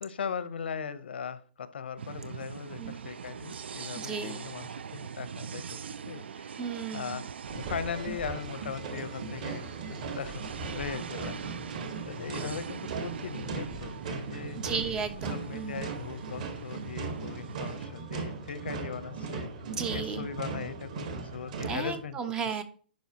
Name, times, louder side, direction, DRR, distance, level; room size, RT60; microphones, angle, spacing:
voice 1, 0.0-5.8 6.1-6.6 6.9-7.3 7.5-10.4 10.7-11.4 12.0-14.6 15.3-19.5 19.9-22.2, left 7 dB, 75° left, 0.7 m, -39 dB
sound 1, 2.0-17.8, right 7 dB, 90° right, 0.4 m, -43 dB
voice 2, 4.0-4.4 6.6-7.2 14.6-15.9 19.7-20.3 21.7-22.6, right 6 dB, 10° right, 0.3 m, -34 dB
sound 2, 7.4-22.0, right 4 dB, 45° right, 1.1 m, -38 dB
10.5 x 4.6 x 2.8 m
hypercardioid pair, 170°, 6 cm